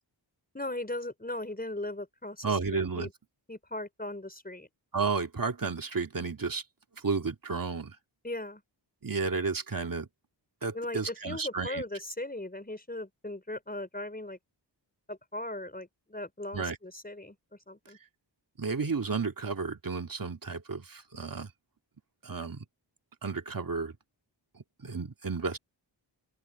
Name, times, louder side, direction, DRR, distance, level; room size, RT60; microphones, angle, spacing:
voice 1, 0.5-3.1 3.5-4.7 8.2-8.6 10.7-14.4 15.1-17.4 17.7-18.0, left 1 dB, 20° left, 5.4 m, -38 dB
voice 2, 2.4-3.1 4.9-6.6 7.0-8.0 9.0-10.1 10.6-11.8 16.5-16.8 18.6-21.5 22.2-22.7 23.2-23.9 24.8-25.6, right 4 dB, 45° right, 2.3 m, -32 dB
open air
wide cardioid pair, 80°, 45 cm